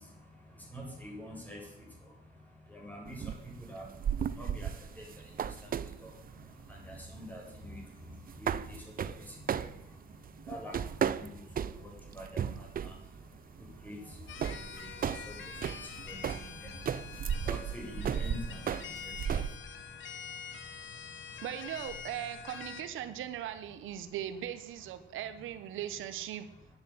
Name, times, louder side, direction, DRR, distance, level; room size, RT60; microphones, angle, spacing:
voice 1, 0.0-21.5 24.0-24.2 25.0-25.2, equal, 10° left, -1 dB, 7.4 m, -48 dB
sound 1, 3.1-19.6, right 8 dB, 45° right, 0.7 m, -36 dB
sound 2, 14.3-22.8, left 7 dB, 70° left, 1.6 m, -45 dB
voice 2, 21.4-26.4, right 11 dB, 85° right, 10 dB, 1.2 m, -39 dB
10.0 x 10.0 x 9.3 m, 0.85 s
cardioid pair, 90°, 20 cm